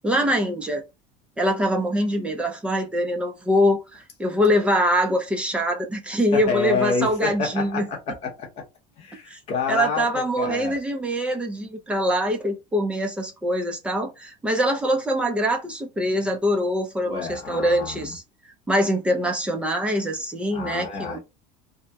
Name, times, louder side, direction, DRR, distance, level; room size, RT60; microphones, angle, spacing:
voice 1, 0.0-0.8 1.4-7.9 9.3-9.4 9.7-18.2 18.7-21.2, equal, 5° right, 0.4 m, -24 dB
voice 2, 6.3-8.6 9.0-10.8 17.0-18.1 20.5-21.2, left 4 dB, 30° left, 0.9 m, -28 dB
2.8 x 2.0 x 3.4 m
cardioid pair, 175°, 19 cm